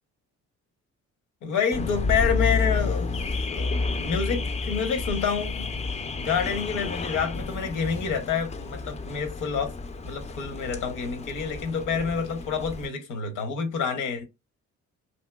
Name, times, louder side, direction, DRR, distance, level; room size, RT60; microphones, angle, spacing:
voice 1, 1.4-3.2 3.5-5.7 6.2-9.8 10.0-14.3, left 6 dB, 85° left, 0.9 m, -28 dB
Car / Alarm, 1.7-12.9, left 4 dB, 25° left, 0.3 m, -30 dB
2.8 x 2.8 x 2.2 m
cardioid pair, 90°, 30 cm